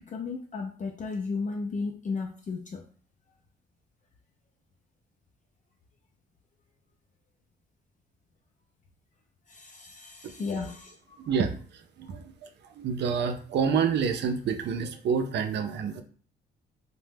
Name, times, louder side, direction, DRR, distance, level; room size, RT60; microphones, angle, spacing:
voice 1, 0.0-2.8 9.5-11.2 12.0-12.1, left 4 dB, 40° left, 2 dB, 0.4 m, -34 dB
voice 2, 10.2-10.6 11.2-16.0, right 6 dB, 60° right, 7 dB, 0.5 m, -29 dB
2.7 x 2.2 x 3.4 m, 0.43 s
cardioid pair, 90°, 20 cm